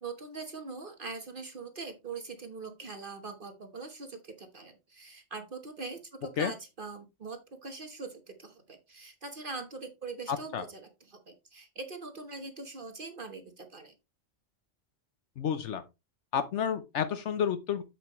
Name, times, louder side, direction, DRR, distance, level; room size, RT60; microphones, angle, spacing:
voice 1, 0.0-13.9, right 4 dB, 50° right, 6 dB, 1.3 m, -42 dB
voice 2, 10.3-10.6 15.4-15.8 16.3-17.8, left 8 dB, 80° left, 10 dB, 1.1 m, -30 dB
7.5 x 7.3 x 3.1 m, 0.24 s
omnidirectional pair, 1.2 m